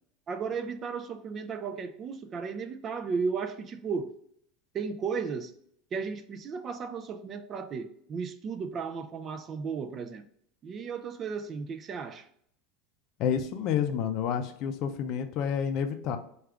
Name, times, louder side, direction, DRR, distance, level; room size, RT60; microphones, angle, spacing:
voice 1, 0.3-4.1 4.7-5.5 5.9-10.2 10.6-12.3, right 5 dB, 30° right, 0.3 m, -34 dB
voice 2, 13.2-16.2, left 8 dB, 45° left, 0.5 m, -29 dB
4.8 x 2.4 x 3.3 m
supercardioid pair, 135°, 0 cm